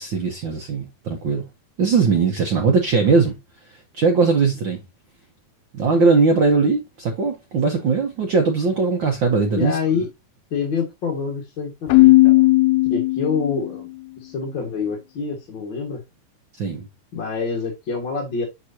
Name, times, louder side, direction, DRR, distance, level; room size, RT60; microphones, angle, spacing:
voice 1, 0.0-1.4 1.8-3.3 3.9-4.8 5.7-9.8 16.6-16.9, right 4 dB, 70° right, 1.1 m, -19 dB
voice 2, 9.3-10.1 10.5-12.5 12.9-13.9 14.2-16.0 17.1-18.5, left 5 dB, 45° left, 2.0 m, -26 dB
Keyboard (musical), 11.9-13.7, left 20 dB, 85° left, 1.4 m, -15 dB
6.6 x 6.1 x 2.7 m
omnidirectional pair, 3.4 m